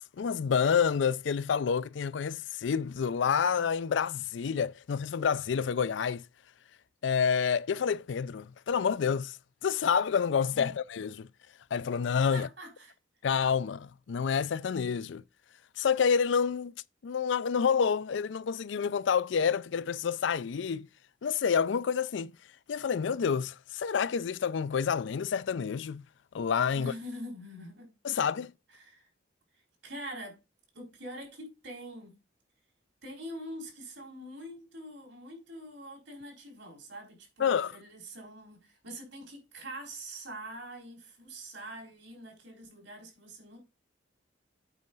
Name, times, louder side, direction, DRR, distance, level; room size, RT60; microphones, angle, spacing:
voice 1, 0.2-6.2 7.0-9.4 9.6-11.3 11.7-12.5 13.2-15.2 15.8-16.7 17.0-20.9 21.2-22.3 22.7-26.0 26.3-26.9 28.0-28.5 37.4-37.7, left 6 dB, 75° left, 0.4 m, -28 dB
voice 2, 12.3-12.9 26.7-27.9 28.7-29.1 29.5-30.4 30.7-32.2 33.0-43.6, equal, 75° right, 4.2 m, -44 dB
8.3 x 4.5 x 5.3 m
head